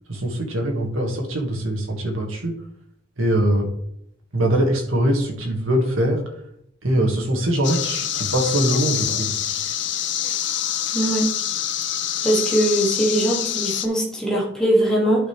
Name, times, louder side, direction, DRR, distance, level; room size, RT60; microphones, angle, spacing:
voice 1, 0.1-2.6 3.2-3.7 4.3-6.2 6.8-9.3, right 1 dB, 85° right, 2 dB, 1.9 m, -22 dB
sound 1, 7.6-13.9, left 10 dB, 60° left, 0.6 m, -26 dB
voice 2, 10.9-11.3 12.2-15.3, right 1 dB, 5° left, -5 dB, 2.1 m, -21 dB
11.0 x 5.4 x 3.3 m, 0.72 s
head